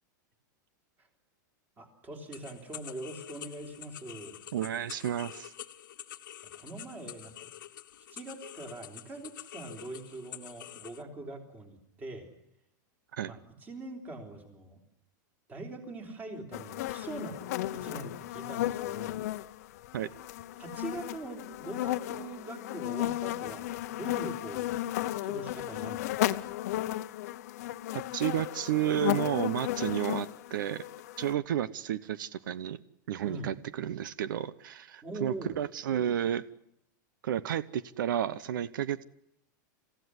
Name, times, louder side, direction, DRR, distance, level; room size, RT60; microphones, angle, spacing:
voice 1, 1.8-4.4 6.4-7.5 8.1-12.3 13.2-14.8 15.5-17.4 17.7-19.2 20.6-24.7 25.2-26.5 33.2-33.5 35.0-35.6, right 2 dB, 15° right, 4 dB, 3.5 m, -43 dB
sound 1, 2.3-11.0, left 12 dB, 90° left, 1.4 m, -47 dB
voice 2, 4.5-5.5 13.1-13.3 19.9-20.1 28.1-30.8 31.2-32.8 33.1-36.4 37.2-39.0, right 11 dB, 80° right, 17 dB, 0.9 m, -31 dB
sound 2, 16.5-31.3, left 15 dB, 50° left, 0.9 m, -34 dB
27.0 x 15.5 x 9.7 m, 0.81 s
supercardioid pair, 175°, 10 cm